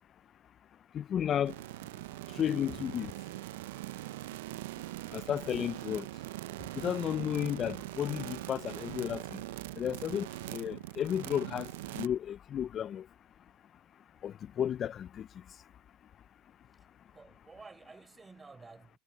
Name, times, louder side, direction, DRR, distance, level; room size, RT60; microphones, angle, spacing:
voice 1, 0.9-1.5 2.4-3.1 5.1-6.0 6.7-9.2 9.8-11.7 11.9-13.0 14.2-15.3, left 9 dB, 35° left, 0.5 m, -33 dB
sound 1, 1.5-12.1, right 18 dB, 75° right, 0.6 m, -42 dB
voice 2, 16.7-19.0, right 4 dB, 15° right, 6.6 m, -53 dB
supercardioid pair, 110°, 0 cm